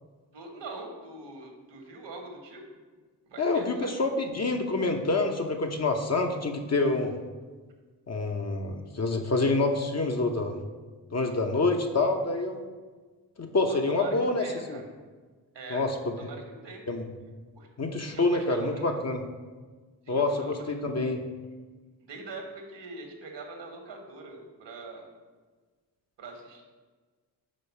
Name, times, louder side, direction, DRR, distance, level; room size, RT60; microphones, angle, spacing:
voice 1, 0.3-2.7 3.2-3.9 13.6-14.8 15.5-15.9 16.2-16.8 17.6-17.7 18.1-18.9 20.0-20.9 22.0-25.1 26.2-26.6, right 3 dB, 60° right, 3 dB, 1.4 m, -43 dB
voice 2, 3.4-7.1 8.1-10.6 11.1-12.6 13.4-14.8 15.7-15.9 16.9-17.0 17.8-19.2 20.1-21.2, left 3 dB, 35° left, 3 dB, 0.8 m, -27 dB
5.2 x 3.9 x 5.7 m, 1.4 s
hypercardioid pair, 40°, 48 cm